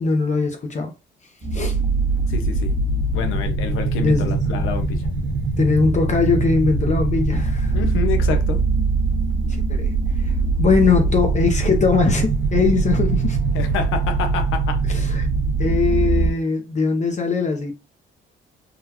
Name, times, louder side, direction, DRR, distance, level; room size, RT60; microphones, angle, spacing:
voice 1, 0.0-0.9 1.5-1.8 4.0-4.3 5.6-7.7 9.7-10.3 10.6-13.4 14.9-15.3 15.6-17.7, left 4 dB, 35° left, 0.6 m, -21 dB
sound 1, 1.4-16.3, right 3 dB, 40° right, 1.3 m, -21 dB
voice 2, 2.3-2.7 3.1-5.1 7.7-8.6 13.5-15.0, left 6 dB, 85° left, 0.7 m, -27 dB
3.8 x 2.2 x 2.8 m
cardioid pair, 90°, 20 cm